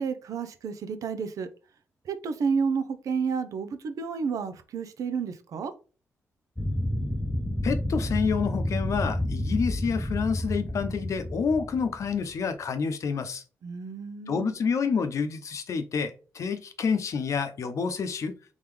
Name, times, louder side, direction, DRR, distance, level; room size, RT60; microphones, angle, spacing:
voice 1, 0.0-1.5 2.0-5.7 13.6-14.6, right 5 dB, 75° right, 0.7 m, -30 dB
sound 1, 6.6-12.4, left 1 dB, 10° left, 0.6 m, -30 dB
voice 2, 7.6-13.4 14.3-18.3, left 5 dB, 65° left, 0.7 m, -28 dB
3.8 x 3.5 x 3.3 m
cardioid pair, 75°, 6 cm